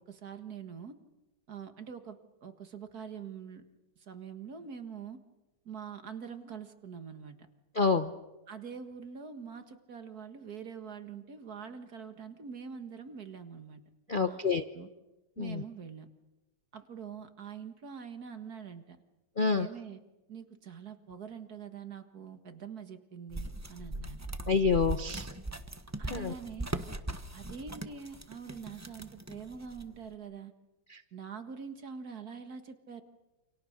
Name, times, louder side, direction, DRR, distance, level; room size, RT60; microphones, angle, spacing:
voice 1, 0.1-0.9 1.5-3.6 4.0-5.2 5.6-7.5 8.5-13.8 14.1-14.4 14.7-14.9 15.4-16.1 16.7-19.0 19.5-20.0 20.3-24.4 26.0-26.7 27.3-30.5 31.1-33.0, right 6 dB, 45° right, 8 dB, 2.1 m, -44 dB
voice 2, 7.7-8.1 14.1-14.6 15.4-15.6 19.4-19.7 24.5-25.3 26.1-26.3 30.9-31.0, left 5 dB, 80° left, 9 dB, 0.4 m, -28 dB
sound 1, 23.3-30.1, right 2 dB, 20° right, 0.4 m, -40 dB
28.5 x 28.0 x 6.6 m, 1.0 s
omnidirectional pair, 2.4 m